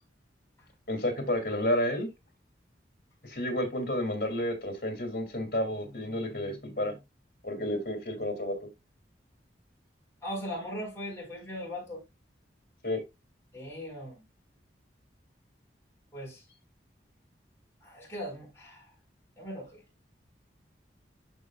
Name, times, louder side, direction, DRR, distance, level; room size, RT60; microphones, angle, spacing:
voice 1, 0.9-2.1 3.2-7.0 7.4-8.5 12.8-13.0, left 1 dB, 50° left, 2.6 m, -31 dB
voice 2, 10.2-12.0 13.5-14.2 16.1-16.4 17.8-18.9 19.4-19.8, equal, 15° left, 4.6 m, -39 dB
12.5 x 5.1 x 2.3 m
head